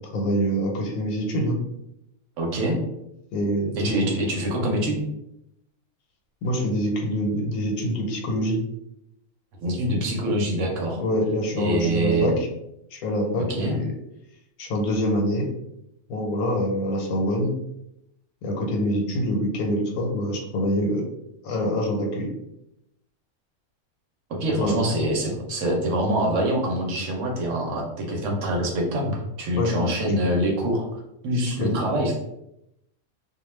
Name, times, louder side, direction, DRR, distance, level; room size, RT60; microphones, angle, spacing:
voice 1, 0.1-1.6 3.3-4.1 6.4-8.6 10.9-12.5 12.9-13.9 14.6-15.5 16.1-17.5 18.4-21.0 21.4-22.3 24.6-24.8 29.6-29.9 31.6-31.7, equal, 85° left, 1 dB, 1.1 m, -25 dB
voice 2, 2.4-2.8 3.8-5.0 9.6-11.0 11.6-12.4 13.4-13.8 24.3-30.9 31.2-32.1, right 1 dB, 65° right, 0 dB, 0.9 m, -25 dB
2.4 x 2.3 x 3.1 m, 0.83 s
omnidirectional pair, 1.5 m